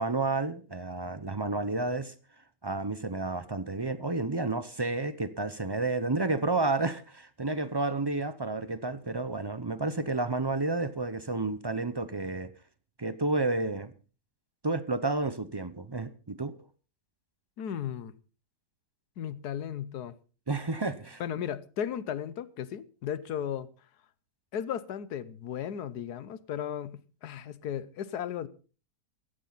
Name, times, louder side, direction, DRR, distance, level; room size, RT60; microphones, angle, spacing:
voice 1, 0.0-2.1 2.6-12.5 13.0-13.9 14.6-16.6 20.5-21.2, right 3 dB, 40° right, 0.3 m, -31 dB
voice 2, 17.6-18.1 19.2-20.1 21.2-23.7 24.5-28.5, left 9 dB, 70° left, 1.4 m, -35 dB
16.5 x 14.0 x 4.1 m
omnidirectional pair, 1.8 m